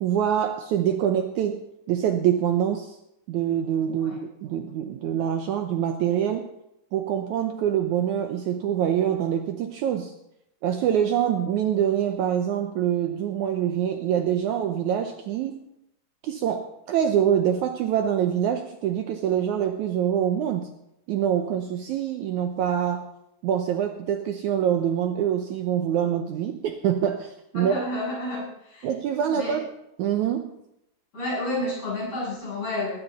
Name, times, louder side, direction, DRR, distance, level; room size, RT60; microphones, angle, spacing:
voice 1, 0.0-1.6 1.9-3.0 3.3-6.5 6.9-10.1 10.6-15.7 16.2-20.7 21.1-23.1 23.4-27.7 28.8-29.7 30.0-30.5, right 9 dB, 75° right, 6 dB, 1.9 m, -25 dB
voice 2, 27.5-28.9 29.3-29.6 31.1-33.0, left 1 dB, 50° left, -6 dB, 8.2 m, -30 dB
20.0 x 9.9 x 4.1 m, 0.83 s
omnidirectional pair, 4.0 m